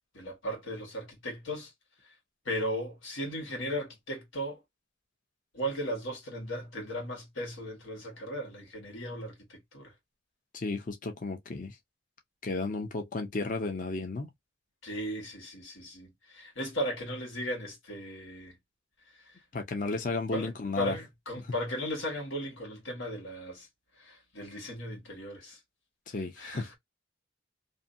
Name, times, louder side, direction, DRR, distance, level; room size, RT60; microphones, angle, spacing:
voice 1, 0.1-1.7 2.4-4.6 5.5-9.9 14.8-18.6 19.3-19.4 20.3-23.7 24.0-25.6 26.4-26.8, equal, 90° left, 1.5 m, -36 dB
voice 2, 10.5-11.8 12.4-14.3 19.5-21.0 26.1-26.7, left 3 dB, 45° left, 0.6 m, -33 dB
2.6 x 2.6 x 2.5 m
head